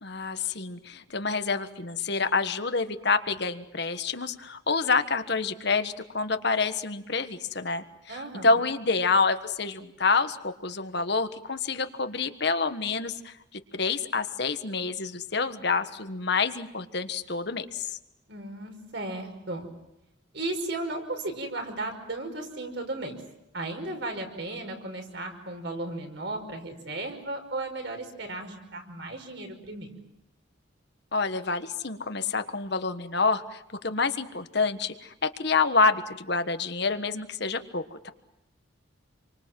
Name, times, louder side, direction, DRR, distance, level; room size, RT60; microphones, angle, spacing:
voice 1, 0.0-17.9 31.1-35.1 35.4-38.1, left 4 dB, 55° left, 9 dB, 1.4 m, -28 dB
voice 2, 8.1-8.6 18.3-19.7 20.3-23.1 23.5-29.9, right 2 dB, 60° right, 4 dB, 5.5 m, -35 dB
28.5 x 24.5 x 7.7 m, 0.88 s
head